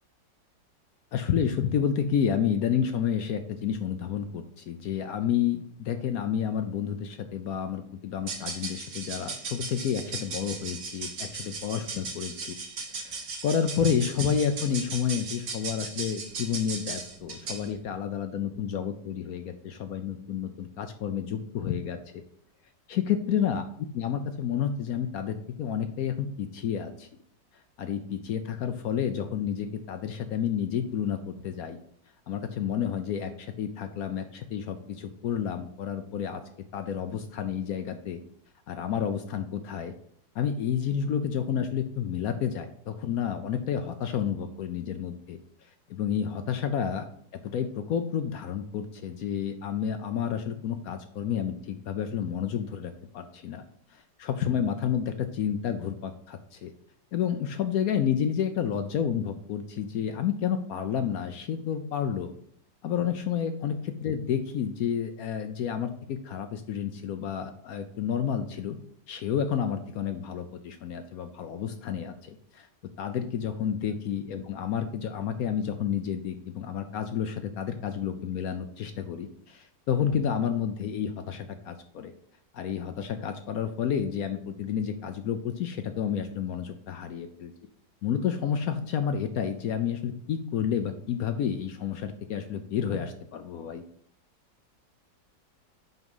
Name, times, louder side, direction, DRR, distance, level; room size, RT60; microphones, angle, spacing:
voice 1, 1.1-12.5 12.9-22.2 22.9-23.6 23.9-27.1 27.8-31.8 32.3-36.4 36.7-38.2 38.7-39.9 40.3-45.4 45.9-47.1 47.5-53.6 53.9-56.7 57.1-62.3 62.8-68.8 69.1-72.7 73.0-82.1 82.5-87.5 88.0-93.8, left 8 dB, 70° left, 8 dB, 0.9 m, -30 dB
sound 1, 8.2-17.7, right 4 dB, 65° right, 2.0 m, -37 dB
6.0 x 5.2 x 5.4 m, 0.65 s
omnidirectional pair, 2.0 m